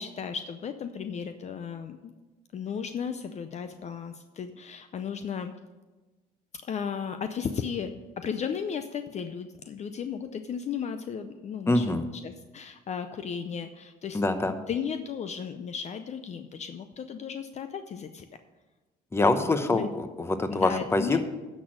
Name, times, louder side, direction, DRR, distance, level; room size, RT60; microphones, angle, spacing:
voice 1, 0.0-2.1 2.5-5.5 6.6-7.9 8.2-11.9 12.2-14.2 14.7-18.2 19.4-19.9 20.5-21.2, left 7 dB, 40° left, 9 dB, 0.6 m, -35 dB
voice 2, 11.7-12.1 14.1-14.6 19.1-21.2, left 2 dB, 15° left, 9 dB, 0.8 m, -25 dB
10.0 x 6.2 x 6.3 m, 1.2 s
cardioid pair, 110°, 17 cm